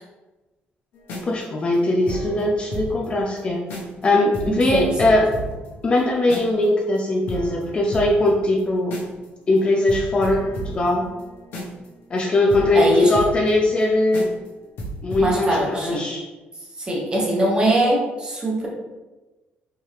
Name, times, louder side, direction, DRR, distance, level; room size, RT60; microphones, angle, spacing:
sound 1, 0.9-3.1 3.4-3.5 3.7-4.0 4.3-6.6 7.0-7.1 7.3-9.3 9.6-9.7 9.9-13.8 14.1-14.5 14.8-15.3, equal, 70° left, 1.0 m, -33 dB
voice 1, 1.2-3.6 4.0-5.3 5.8-8.9 9.5-11.1 12.1-14.3 15.0-16.2, left 2 dB, 30° left, 0 dB, 0.5 m, -20 dB
voice 2, 4.7-5.1 12.7-13.1 15.2-16.0 16.8-18.7, right 1 dB, 25° right, -2 dB, 1.0 m, -21 dB
4.6 x 2.8 x 3.3 m, 1.1 s
cardioid pair, 155°, 4 cm